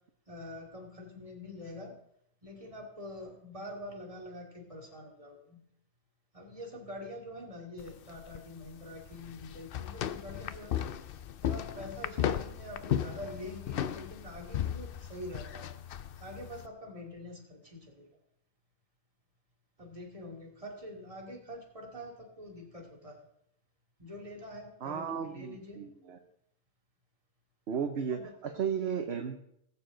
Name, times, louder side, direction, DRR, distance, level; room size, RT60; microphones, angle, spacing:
voice 1, 0.3-1.9 2.4-5.6 6.3-10.9 11.4-15.7 16.2-18.1 19.8-23.3 24.0-25.8 28.1-28.6, left 1 dB, 25° right, 0 dB, 2.3 m, -45 dB
sound 1, 7.8-16.7, left 10 dB, 60° left, 0.6 m, -36 dB
voice 2, 24.8-26.2 27.7-29.4, right 7 dB, 55° right, 5 dB, 1.0 m, -34 dB
19.5 x 7.1 x 3.8 m, 0.74 s
omnidirectional pair, 1.4 m